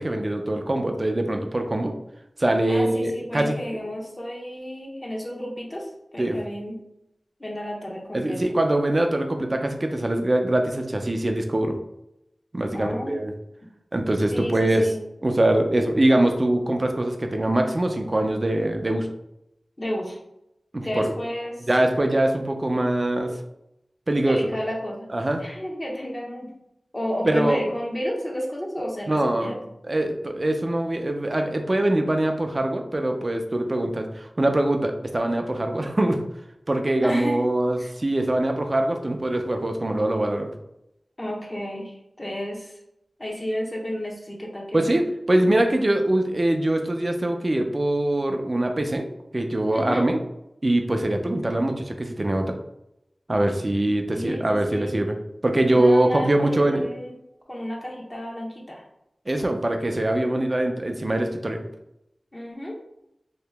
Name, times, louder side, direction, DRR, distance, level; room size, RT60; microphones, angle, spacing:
voice 1, 0.0-1.9 2.4-3.5 6.2-6.4 8.1-11.8 12.5-13.3 13.9-14.9 15.2-19.1 20.7-21.1 21.7-23.3 24.1-24.4 25.1-25.4 27.2-27.6 29.1-29.5 29.9-36.2 36.7-40.5 44.7-49.1 49.3-50.2 50.6-52.5 53.3-55.2 55.4-56.9 59.3-61.6, right 1 dB, 40° right, 4 dB, 0.4 m, -23 dB
voice 2, 2.7-6.8 7.4-8.4 12.7-13.2 14.3-15.0 19.8-20.2 20.8-21.7 24.2-25.1 25.4-26.5 26.9-29.6 37.0-37.4 37.8-37.9 41.2-42.8 43.2-44.9 49.7-50.1 54.1-55.0 55.7-57.2 57.5-58.9 62.3-62.8, equal, 30° left, -2 dB, 0.9 m, -32 dB
2.9 x 2.7 x 3.3 m, 0.83 s
wide cardioid pair, 60°, 0 cm